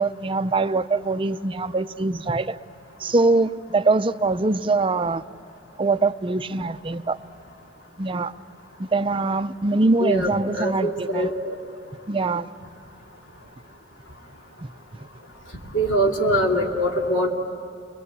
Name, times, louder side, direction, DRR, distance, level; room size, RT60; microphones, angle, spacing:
voice 1, 0.0-2.6 3.0-5.2 5.8-7.2 8.0-8.3 8.8-11.3 12.1-12.5 14.6-14.7, right 3 dB, 25° right, 0.6 m, -23 dB
voice 2, 10.0-11.6 15.7-17.3, right 1 dB, 75° left, 2.9 m, -23 dB
30.0 x 22.0 x 8.3 m
head